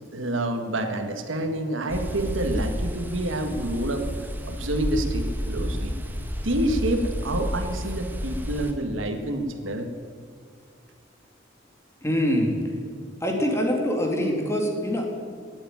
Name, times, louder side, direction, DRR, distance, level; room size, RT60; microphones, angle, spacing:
voice 1, 0.1-4.1 4.5-5.9 6.4-9.9, right 1 dB, 85° right, 6 dB, 1.6 m, -28 dB
sound 1, 1.9-8.7, equal, 10° right, 1.3 m, -31 dB
voice 2, 12.0-12.5 13.2-15.0, equal, 15° left, 1 dB, 2.4 m, -24 dB
18.0 x 8.1 x 9.3 m, 2.1 s
head